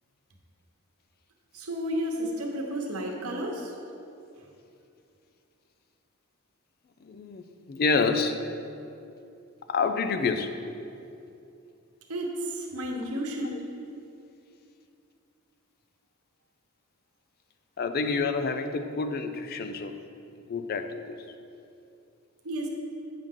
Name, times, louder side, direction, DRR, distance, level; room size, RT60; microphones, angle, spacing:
voice 1, 1.5-3.7 12.1-13.7 22.4-22.7, equal, 85° right, 0 dB, 1.1 m, -32 dB
voice 2, 7.0-8.4 9.7-10.5 13.4-13.6 17.8-19.9 20.5-21.2, left 4 dB, 45° left, 8 dB, 0.4 m, -28 dB
8.8 x 6.2 x 3.7 m, 2.6 s
head